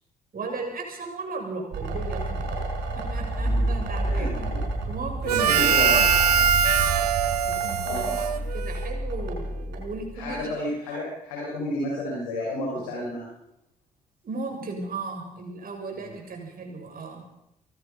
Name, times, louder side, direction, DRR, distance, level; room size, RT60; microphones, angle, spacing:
voice 1, 0.3-2.6 2.9-4.3 4.9-6.0 6.6-6.9 7.6-8.2 8.5-10.5 12.8-12.9 14.2-17.2, right 3 dB, 45° right, 2 dB, 7.1 m, -36 dB
sound 1, 1.7-10.4, right 3 dB, 65° right, 5.3 m, -32 dB
sound 2, 3.0-5.9, right 1 dB, ahead, 2.9 m, -29 dB
voice 2, 4.0-4.6 5.2-6.1 7.8-8.4 10.2-13.2 15.9-16.1, left 1 dB, 80° left, -4 dB, 5.3 m, -31 dB
Harmonica, 5.3-9.1, right 7 dB, 85° right, 0.7 m, -22 dB
23.5 x 19.5 x 5.6 m, 0.84 s
figure-of-eight pair, 40°, 20 cm